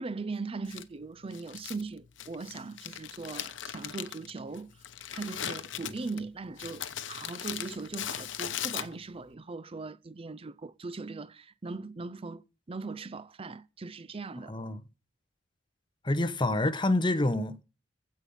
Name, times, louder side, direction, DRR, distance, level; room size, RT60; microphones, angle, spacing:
voice 1, 0.0-4.8 5.1-14.5, right 3 dB, 30° right, 0.5 m, -39 dB
Crumpling crinkling, 0.7-9.3, left 10 dB, 70° left, 0.9 m, -39 dB
voice 2, 14.5-14.8 16.0-17.6, left 2 dB, 25° left, 1.1 m, -27 dB
15.5 x 5.5 x 7.2 m
head